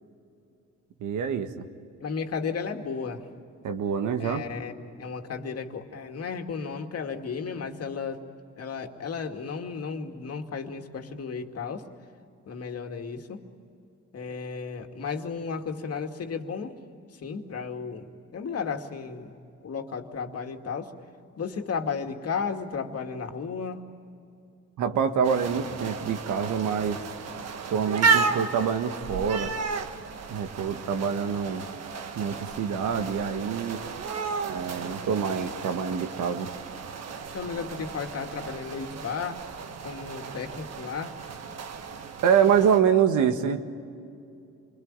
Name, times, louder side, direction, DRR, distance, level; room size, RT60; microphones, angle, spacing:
voice 1, 1.0-1.7 3.6-4.5 24.8-27.0 27.7-29.5 30.3-31.7 32.2-33.8 34.5-36.5 42.2-43.6, right 7 dB, 75° right, 7 dB, 1.7 m, -25 dB
voice 2, 2.0-3.2 4.2-8.2 8.6-11.8 12.5-13.4 14.1-16.7 17.2-18.1 18.3-19.3 19.6-20.9 21.4-23.8 37.3-39.4 39.8-41.1, left 5 dB, 55° left, 4 dB, 2.4 m, -34 dB
sound 1, 25.2-42.8, right 5 dB, 60° right, 1.5 m, -33 dB
27.5 x 21.5 x 8.9 m, 2.6 s
cardioid pair, 90°, 30 cm